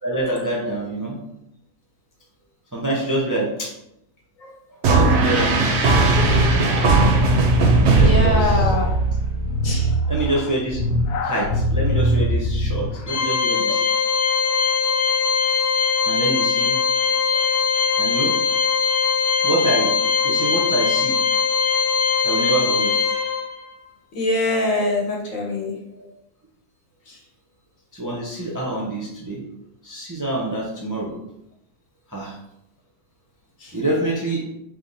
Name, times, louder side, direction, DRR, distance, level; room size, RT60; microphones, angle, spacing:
voice 1, 0.0-1.2 2.7-3.7 4.7-5.7 7.9-8.7 10.1-10.8 11.2-13.8 16.0-16.8 18.0-18.3 19.4-19.9 20.2-21.2 22.2-22.9 27.9-29.4 29.8-31.2 32.1-32.4 33.7-34.4, right 1 dB, 20° right, -4 dB, 0.5 m, -26 dB
sound 1, 4.8-9.1, right 3 dB, 60° right, 0.7 m, -17 dB
sound 2, 6.1-13.0, equal, 90° left, 1.2 m, -23 dB
voice 2, 6.7-7.4 7.9-8.9 9.6-9.9 13.7-13.8 14.5-15.0 17.3-17.5 24.1-25.8 27.1-27.2 33.6-33.7, left 2 dB, 60° left, -2 dB, 1.4 m, -25 dB
Organ, 13.1-23.7, left 6 dB, 45° left, 1.0 m, -21 dB
3.4 x 3.2 x 4.1 m, 0.82 s
omnidirectional pair, 1.6 m